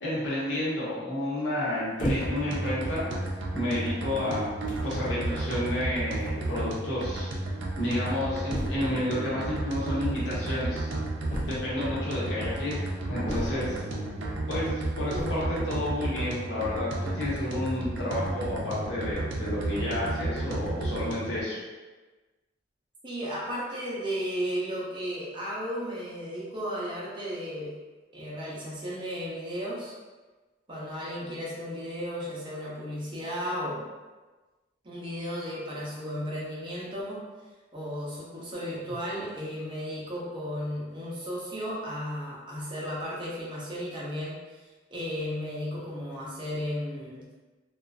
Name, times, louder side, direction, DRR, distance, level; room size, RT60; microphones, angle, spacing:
voice 1, 0.0-3.1 3.5-4.5 4.8-7.3 7.8-10.9 11.4-12.8 13.1-13.8 14.5-21.6, left 1 dB, 70° left, -8 dB, 0.9 m, -31 dB
sound 1, 2.0-2.6 3.4-3.5 4.3-4.4 4.7-5.0 6.2-6.3 6.5-6.6 6.8-6.9 8.5-9.0 11.3-12.0 13.2-13.9 15.1-15.5, equal, 45° left, 0.5 m, -33 dB
sound 2, 2.2-21.4, right 2 dB, 80° right, 0.4 m, -32 dB
voice 2, 23.0-27.7 28.1-29.9 30.7-33.9 34.8-37.2 37.7-44.6 44.9-47.3, equal, 25° right, -6 dB, 0.6 m, -34 dB
2.4 x 2.2 x 2.3 m, 1.2 s
head